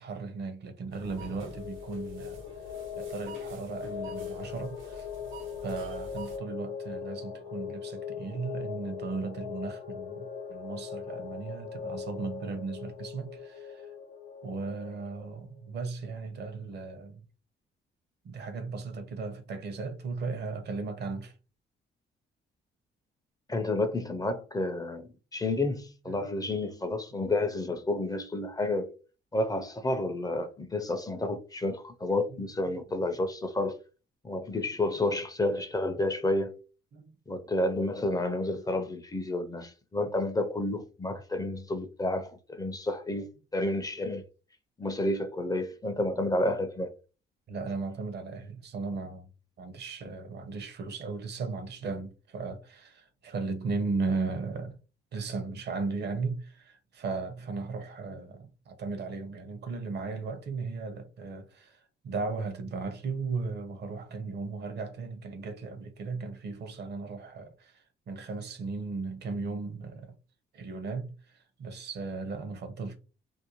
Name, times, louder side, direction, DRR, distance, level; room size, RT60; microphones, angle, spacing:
voice 1, 0.0-2.4 2.9-5.1 5.6-13.9 14.4-17.2 18.2-21.3 26.1-26.2 32.3-32.8 36.9-37.1 47.5-49.3 49.6-54.8 55.1-70.1 70.5-73.0, right 4 dB, 60° right, 0.7 m, -36 dB
sound 1, 0.9-6.4, right 1 dB, 90° right, 0.9 m, -48 dB
sound 2, 1.0-15.4, left 7 dB, 75° left, 0.8 m, -40 dB
voice 2, 23.5-28.9 29.3-33.8 34.2-36.5 37.3-44.2 44.8-46.9, left 2 dB, 20° left, 0.4 m, -30 dB
2.6 x 2.1 x 2.8 m
cardioid pair, 90°, 20 cm